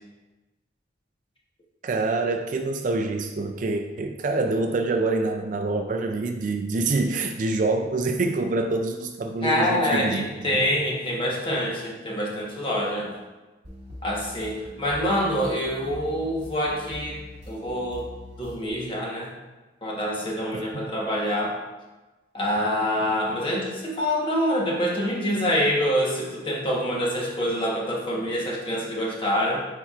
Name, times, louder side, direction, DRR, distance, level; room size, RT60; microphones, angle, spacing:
voice 1, 1.8-10.7 20.5-20.9, right 3 dB, 40° right, 5 dB, 0.3 m, -26 dB
voice 2, 9.4-13.1 14.0-17.2 17.5-18.1 18.4-19.3 19.8-21.6 22.3-29.6, equal, 25° left, -3 dB, 1.1 m, -26 dB
sound 1, 13.6-18.7, left 1 dB, 65° right, 1.6 m, -43 dB
9.7 x 4.4 x 2.4 m, 1.2 s
head